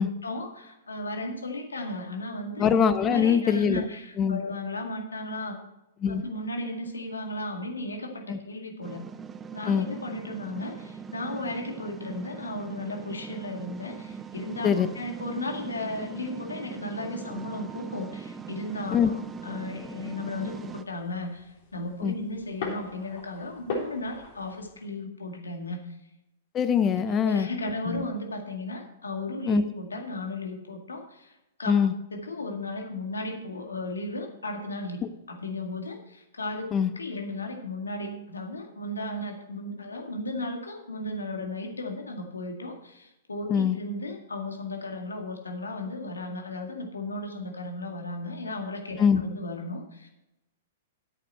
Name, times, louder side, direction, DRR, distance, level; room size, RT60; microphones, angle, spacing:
voice 1, 0.0-2.7 3.0-5.6 6.1-9.0 9.5-26.0 26.9-31.7 32.1-35.0 35.3-50.1, left 2 dB, 90° left, 3 dB, 1.9 m, -35 dB
voice 2, 2.6-3.8 4.2-4.4 6.0-6.2 8.3-8.4 9.7-9.9 14.6-14.9 18.9-19.1 22.0-22.1 26.5-27.5 27.9-28.0 29.5-29.6 31.7-31.9 36.7-36.9 43.5-43.8 49.0-49.2, left 7 dB, 25° left, 12 dB, 0.8 m, -23 dB
sound 1, 8.8-20.8, right 6 dB, 20° right, 0.6 m, -41 dB
sound 2, 18.6-24.7, left 3 dB, 60° left, 3.7 m, -41 dB
11.0 x 8.4 x 4.4 m, 0.92 s
hypercardioid pair, 115°, 0 cm